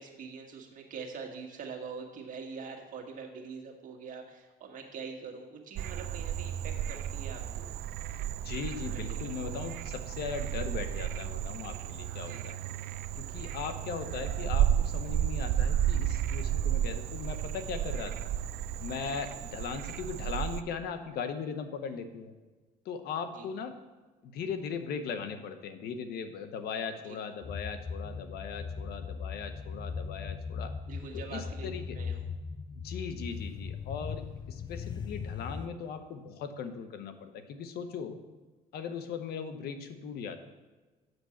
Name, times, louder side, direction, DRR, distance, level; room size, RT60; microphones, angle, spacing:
voice 1, 0.0-7.7 8.9-9.3 12.3-12.4 19.1-19.2 23.3-23.4 27.0-27.2 30.9-32.2, right 5 dB, 50° right, 1 dB, 1.6 m, -44 dB
Frog, 5.8-20.6, right 10 dB, 70° right, 0.4 m, -33 dB
voice 2, 8.4-12.7 13.2-18.3 18.8-22.3 22.8-23.8 24.2-30.7 31.1-31.8 32.7-38.2 38.7-40.4, left 6 dB, 70° left, 9 dB, 0.9 m, -39 dB
sound 1, 27.4-35.7, left 5 dB, 25° left, 0.3 m, -39 dB
8.0 x 6.1 x 5.8 m, 1.3 s
cardioid pair, 110°, 17 cm